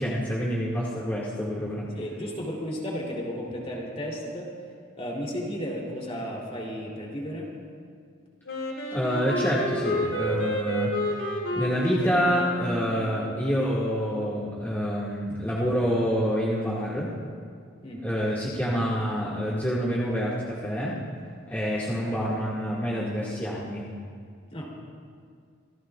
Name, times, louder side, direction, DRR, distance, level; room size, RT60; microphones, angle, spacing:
voice 1, 0.0-1.9 8.9-10.9 11.5-17.1 18.0-21.0 21.5-23.9, equal, 10° left, -9 dB, 2.1 m, -27 dB
voice 2, 2.0-4.5 5.0-7.5 17.8-18.0 24.5-24.7, equal, 30° left, -3 dB, 3.4 m, -33 dB
Wind instrument woodwind instrument, 8.5-13.5, equal, 70° left, 2.6 m, -31 dB
27.5 x 16.0 x 2.5 m, 2.1 s
head